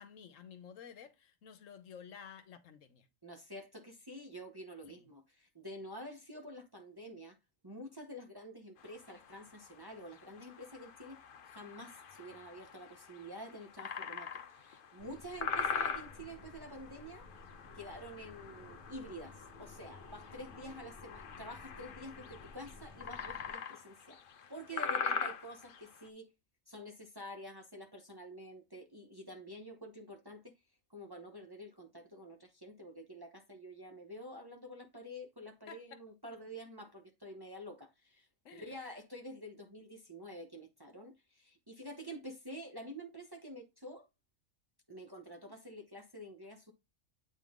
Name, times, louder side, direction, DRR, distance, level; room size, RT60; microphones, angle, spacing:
voice 1, 0.0-3.1 4.9-5.0 24.8-24.9 35.7-36.0 38.4-38.8, left 7 dB, 75° left, 1.2 m, -52 dB
voice 2, 3.2-7.4 7.6-17.3 17.7-24.2 24.5-26.3 26.7-30.5 30.9-44.1 44.9-46.7, equal, 20° right, 0.7 m, -48 dB
sound 1, 8.8-26.1, left 6 dB, 50° left, 0.7 m, -43 dB
sound 2, 15.0-23.5, left 3 dB, 35° left, 1.1 m, -55 dB
8.2 x 3.7 x 3.6 m
omnidirectional pair, 1.4 m